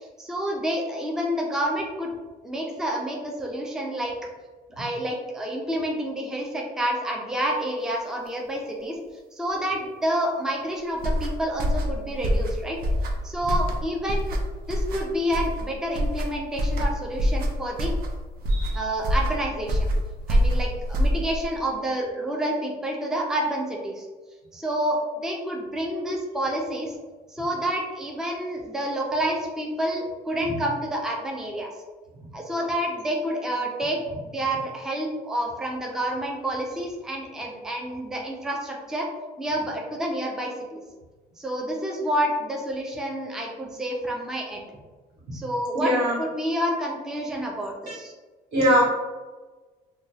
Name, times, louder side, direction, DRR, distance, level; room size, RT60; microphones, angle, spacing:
voice 1, 0.2-2.1 2.4-4.1 4.8-9.0 9.3-12.8 13.2-14.4 14.7-17.9 18.7-19.9 20.3-24.1 24.5-26.9 27.3-31.7 32.3-34.0 34.3-39.1 39.4-40.8 41.4-44.6 45.3-48.1, right 1 dB, 5° right, 0 dB, 0.4 m, -28 dB
sound 1, 10.9-21.6, equal, 60° right, 0.5 m, -25 dB
voice 2, 45.7-46.1 48.5-48.8, equal, 80° right, -5 dB, 1.2 m, -21 dB
2.9 x 2.2 x 2.6 m, 1.3 s
cardioid pair, 110°, 17 cm